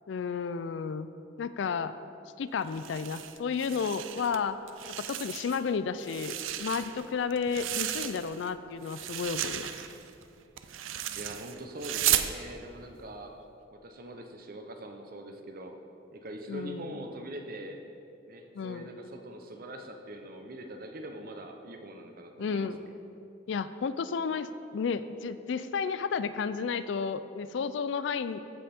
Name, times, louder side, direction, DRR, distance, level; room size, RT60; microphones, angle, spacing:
voice 1, 0.1-1.1 1.4-2.0 2.4-4.6 5.0-9.8 16.5-16.9 18.6-18.9 22.4-22.8 23.5-28.4, left 5 dB, 65° left, 13 dB, 0.3 m, -32 dB
sound 1, 2.7-4.4 4.7-5.7 6.0-8.5 8.8-12.3, right 11 dB, 85° right, 0.5 m, -34 dB
voice 2, 11.1-13.4 13.7-15.8 16.1-17.8 18.3-22.9, right 1 dB, 50° right, 5 dB, 0.8 m, -43 dB
14.5 x 5.3 x 4.4 m, 2.8 s
head